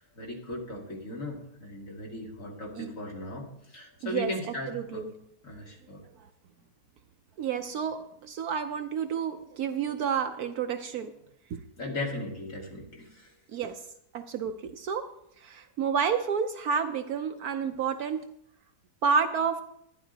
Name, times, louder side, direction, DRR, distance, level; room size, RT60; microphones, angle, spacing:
voice 1, 0.0-5.1 5.4-6.0 11.8-13.3, left 2 dB, 50° left, -2 dB, 2.9 m, -37 dB
voice 2, 4.7-5.1 7.4-11.1 11.5-11.6 13.5-13.8 14.1-15.1 15.4-18.2 19.0-19.6, right 6 dB, 70° right, 7 dB, 1.1 m, -30 dB
13.0 x 10.5 x 4.0 m, 0.75 s
omnidirectional pair, 1.8 m